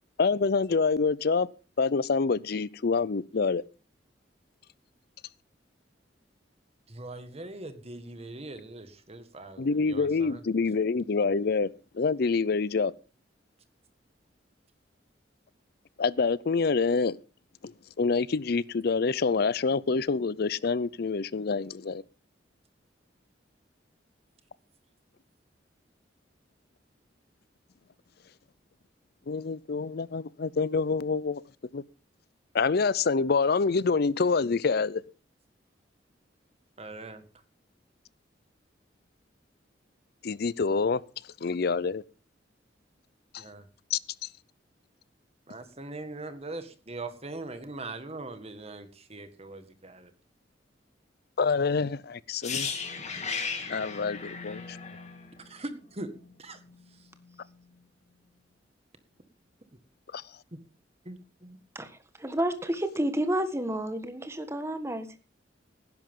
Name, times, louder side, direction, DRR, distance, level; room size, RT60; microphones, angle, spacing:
voice 1, 0.2-1.5 1.8-3.6 9.6-11.7 11.9-12.9 16.0-17.2 18.0-22.0 29.3-31.4 31.7-31.8 32.5-35.0 40.2-41.0 41.4-42.0 43.3-43.4 43.9-44.0 51.4-52.7 53.7-54.8, left 4 dB, 55° left, 0.5 m, -26 dB
voice 2, 6.9-10.4 36.8-37.2 43.4-43.7 45.5-50.1 55.4-56.1 56.4-56.6 61.1-61.2 61.4-61.6, right 2 dB, 35° right, 1.7 m, -41 dB
sound 1, 52.4-56.3 56.5-56.7, left 5 dB, 40° left, 2.5 m, -36 dB
voice 3, 62.2-65.2, right 1 dB, 15° right, 1.5 m, -30 dB
17.5 x 10.5 x 3.7 m
head